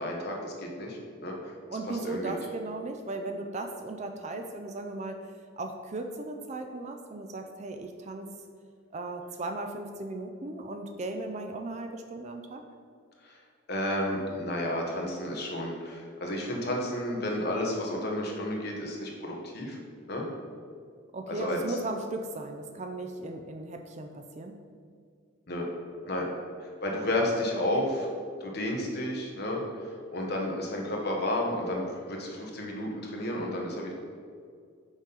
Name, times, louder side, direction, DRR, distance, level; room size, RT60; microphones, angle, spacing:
voice 1, 0.0-2.4 13.2-13.4 13.7-19.8 20.1-20.2 21.3-21.8 25.5-25.6 26.0-26.3 26.6-28.1 28.4-33.9, left 1 dB, 50° left, -1 dB, 1.1 m, -32 dB
voice 2, 1.7-8.3 8.9-12.6 21.1-24.6 27.7-27.8, right 2 dB, 35° right, 5 dB, 0.4 m, -37 dB
6.1 x 4.0 x 5.4 m, 2.1 s
head